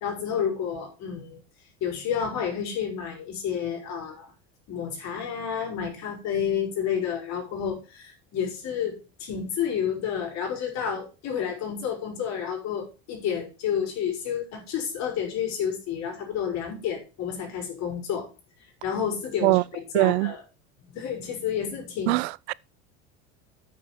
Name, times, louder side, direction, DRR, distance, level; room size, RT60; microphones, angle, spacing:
voice 1, 0.0-1.4 1.8-4.3 4.7-18.3 18.8-20.4 20.9-22.2, left 8 dB, 55° left, 5.3 m, -30 dB
voice 2, 19.9-20.3 22.1-22.5, right 23 dB, 85° right, 0.5 m, -22 dB
8.8 x 7.1 x 5.8 m
supercardioid pair, 105°, 32 cm